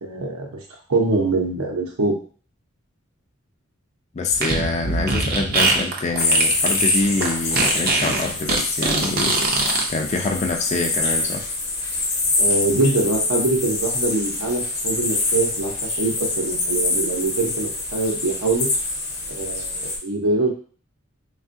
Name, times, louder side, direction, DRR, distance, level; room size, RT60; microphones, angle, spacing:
voice 1, 0.0-0.6 0.9-2.1 12.4-15.7 16.0-18.7 19.3-20.5, right 2 dB, 85° right, 0 dB, 0.8 m, -23 dB
voice 2, 4.1-11.4, left 3 dB, 30° left, 3 dB, 0.4 m, -25 dB
Fart, 4.3-9.8, right 3 dB, 45° right, 0.5 m, -22 dB
sound 1, 6.2-20.0, left 2 dB, 55° left, 0.8 m, -25 dB
3.4 x 2.4 x 2.5 m, 0.42 s
head